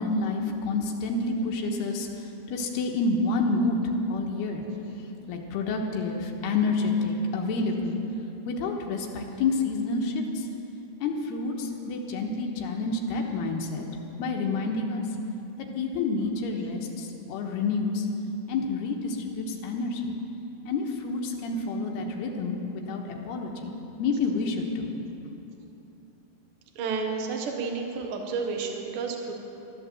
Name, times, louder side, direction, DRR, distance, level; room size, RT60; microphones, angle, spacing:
voice 1, 0.0-2.1 2.5-3.8 4.1-4.7 5.3-8.0 8.4-10.4 11.0-13.9 14.2-15.0 15.6-18.1 18.5-20.1 20.7-24.9, left 3 dB, 85° left, 1 dB, 3.1 m, -28 dB
voice 2, 26.7-29.3, right 4 dB, 60° right, 2 dB, 1.4 m, -31 dB
13.5 x 11.0 x 7.6 m, 2.9 s
omnidirectional pair, 4.6 m